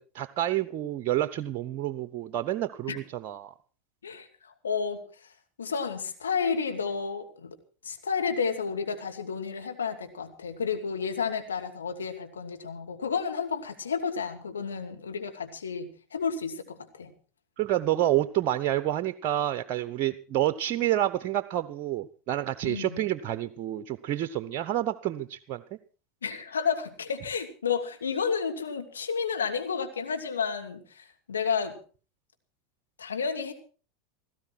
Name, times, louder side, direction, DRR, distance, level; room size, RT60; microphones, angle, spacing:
voice 1, 0.1-3.5 17.6-25.6, right 13 dB, 50° right, 12 dB, 0.9 m, -28 dB
voice 2, 4.0-5.0 5.6-7.5 7.8-17.1 22.6-23.0 26.2-31.8 33.0-33.5, left 6 dB, 85° left, 5 dB, 2.4 m, -31 dB
17.5 x 15.5 x 4.6 m, 0.37 s
hypercardioid pair, 85°, 0 cm